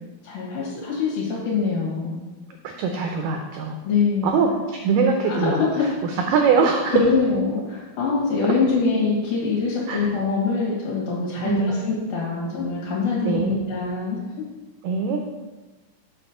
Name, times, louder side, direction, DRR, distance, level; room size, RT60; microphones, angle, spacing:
voice 1, 0.2-2.1 3.8-4.4 5.3-5.8 6.9-14.4, left 4 dB, 65° left, -6 dB, 3.1 m, -24 dB
voice 2, 2.6-3.8 4.2-5.6 6.0-7.0 9.9-10.1 11.4-11.7 13.2-13.7 14.8-15.2, right 5 dB, 85° right, 3 dB, 1.9 m, -22 dB
7.3 x 4.3 x 6.8 m, 1.2 s
omnidirectional pair, 4.6 m